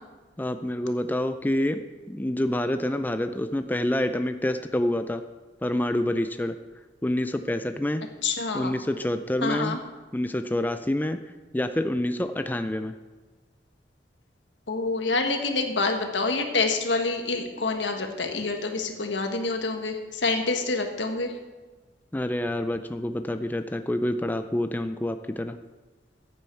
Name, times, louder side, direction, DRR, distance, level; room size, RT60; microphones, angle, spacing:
voice 1, 0.4-5.2 5.6-6.5 7.0-8.0 8.5-9.8 10.1-11.2 11.5-12.9 22.1-25.6, left 1 dB, 10° left, 9 dB, 0.4 m, -27 dB
voice 2, 8.2-8.7 9.4-9.8 14.7-21.3, left 3 dB, 80° left, 5 dB, 1.5 m, -27 dB
14.5 x 8.8 x 4.6 m, 1.3 s
head